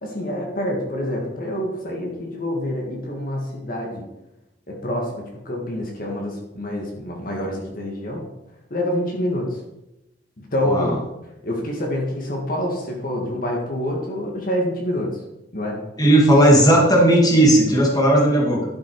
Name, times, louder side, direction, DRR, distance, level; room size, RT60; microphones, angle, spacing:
voice 1, 0.0-4.0 4.7-8.3 8.7-9.6 10.4-10.9 11.4-15.2 15.5-15.8, left 1 dB, 50° left, 0 dB, 1.8 m, -27 dB
voice 2, 10.7-11.0 16.0-18.6, right 1 dB, 20° left, -1 dB, 2.2 m, -15 dB
11.5 x 6.2 x 4.7 m, 0.91 s
head